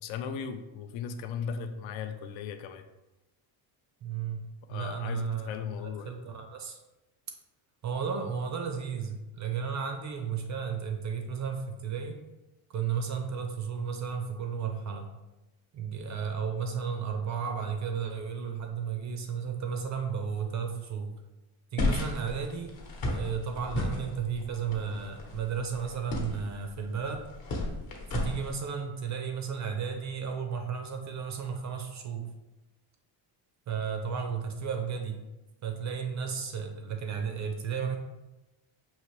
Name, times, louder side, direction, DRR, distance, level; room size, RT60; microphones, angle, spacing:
voice 1, 0.0-2.8 4.7-6.2, left 6 dB, 65° left, 7 dB, 0.5 m, -36 dB
voice 2, 4.0-4.4 4.7-5.5 5.8-6.8 7.8-12.2 12.7-15.1 15.7-21.1 21.7-22.7 23.0-27.3 28.1-32.3 33.7-35.2 35.6-38.0, right 6 dB, 40° right, 5 dB, 0.4 m, -33 dB
sound 1, 21.8-28.5, left 2 dB, 40° left, 1.0 m, -34 dB
5.6 x 2.9 x 3.1 m, 1.0 s
cardioid pair, 155°, 49 cm